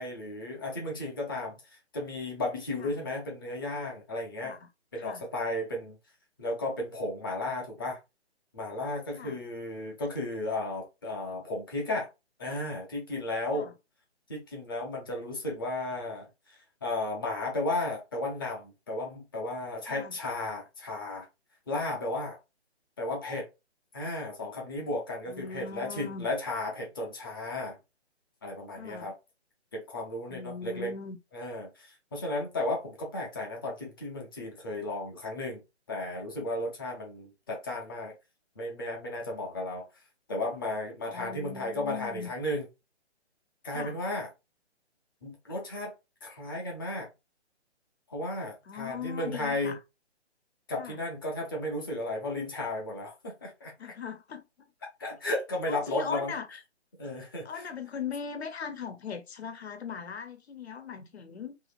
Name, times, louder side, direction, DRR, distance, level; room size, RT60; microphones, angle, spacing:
voice 1, 0.0-1.5 1.9-4.6 4.9-6.0 6.4-8.0 8.5-12.1 12.4-13.7 14.3-21.3 21.7-22.4 23.0-23.5 23.9-27.8 28.4-29.1 29.7-30.9 31.3-35.6 35.9-38.1 38.6-39.9 40.3-42.7 43.6-44.3 45.2-45.9 46.2-47.1 48.1-49.8 50.7-53.7 55.0-56.3 57.0-57.6, left 2 dB, 20° left, 0.6 m, -34 dB
voice 2, 25.3-26.3 28.7-29.1 30.3-31.2 41.1-42.3 43.7-44.0 48.7-49.8 50.8-51.0 53.8-54.7 55.7-56.6 57.4-61.5, left 6 dB, 65° left, 0.8 m, -40 dB
2.7 x 2.6 x 3.9 m
hypercardioid pair, 160°, 34 cm